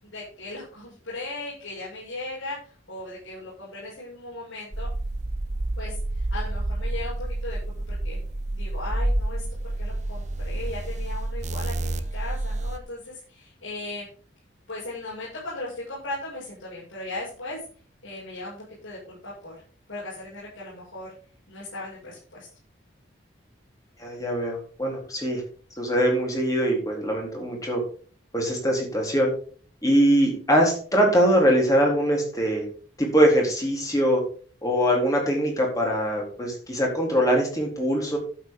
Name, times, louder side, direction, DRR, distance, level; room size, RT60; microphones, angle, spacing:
voice 1, 0.0-4.9 5.8-7.6 7.9-8.2 8.5-14.1 14.7-17.6 18.0-19.5 19.9-21.1 21.5-22.5, left 2 dB, 90° left, -8 dB, 6.3 m, -37 dB
sound 1, 4.7-12.8, right 1 dB, 35° right, 0.9 m, -29 dB
voice 2, 24.0-25.4 25.8-27.8 28.3-29.3 29.8-32.6 33.0-34.2 34.6-38.2, equal, 20° left, 0 dB, 3.7 m, -22 dB
12.0 x 8.6 x 3.8 m, 0.43 s
head